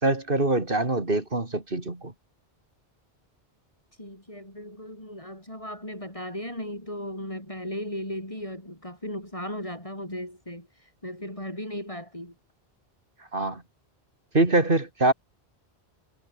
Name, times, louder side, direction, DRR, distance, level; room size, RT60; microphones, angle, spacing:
voice 1, 0.0-2.1 13.3-13.6 14.3-15.1, right 2 dB, 55° right, 3.3 m, -24 dB
voice 2, 4.0-12.3, left 1 dB, 30° left, 6.9 m, -36 dB
omnidirectional pair, 1.1 m